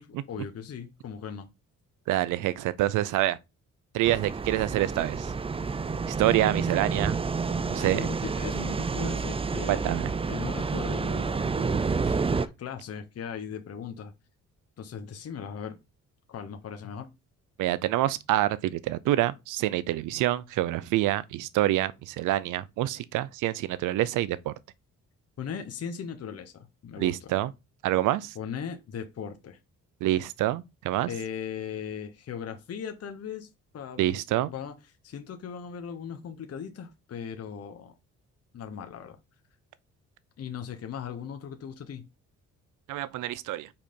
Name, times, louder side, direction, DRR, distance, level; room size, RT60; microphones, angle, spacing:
voice 1, 0.3-1.5 7.5-9.9 10.3-14.1 14.8-15.8 16.3-17.1 25.4-27.3 28.3-29.6 31.1-34.0 34.4-34.7 35.0-37.9 38.5-39.2 40.4-42.0, left 7 dB, 55° left, 1.1 m, -38 dB
voice 2, 2.1-3.4 3.9-5.3 6.1-7.2 7.7-8.1 9.7-10.1 17.6-24.5 27.0-27.5 27.8-28.4 30.0-31.1 34.0-34.5 42.9-43.7, right 15 dB, 90° right, 0.6 m, -27 dB
sound 1, 4.0-12.5, right 4 dB, 20° right, 0.5 m, -29 dB
5.8 x 5.0 x 4.4 m
cardioid pair, 90°, 30 cm